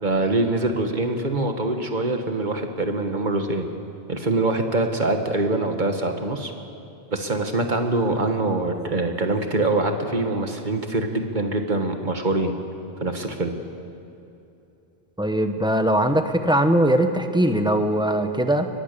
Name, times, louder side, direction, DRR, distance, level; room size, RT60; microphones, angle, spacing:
voice 1, 0.0-3.7 4.1-6.5 7.1-12.5 13.0-13.5, right 2 dB, 45° right, 5 dB, 1.8 m, -24 dB
voice 2, 15.2-18.7, right 1 dB, 5° right, 7 dB, 1.1 m, -20 dB
23.0 x 20.0 x 6.9 m, 2.7 s
omnidirectional pair, 1.1 m